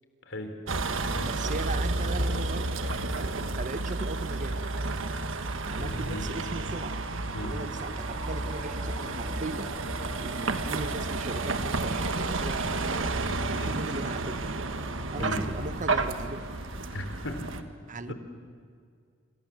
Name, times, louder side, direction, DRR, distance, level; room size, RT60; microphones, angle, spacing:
voice 1, 0.3-0.6 1.1-1.3 5.7-6.3 7.3-7.6 13.5-13.8 15.2-15.4 16.9-17.5 18.1-18.2, left 1 dB, 70° left, 6 dB, 3.7 m, -36 dB
Vehicle, 0.7-17.6, right 3 dB, 80° right, 1.5 m, -31 dB
voice 2, 1.2-4.6 5.6-7.0 7.4-9.7 10.2-13.1 13.5-14.4 15.1-16.5 17.9-18.1, right 2 dB, 40° right, 11 dB, 1.1 m, -38 dB
sound 1, 7.7-15.7, equal, 5° right, 2.9 m, -42 dB
sound 2, 12.4-17.5, equal, 65° right, 7.9 m, -52 dB
29.0 x 26.5 x 7.5 m, 2.2 s
head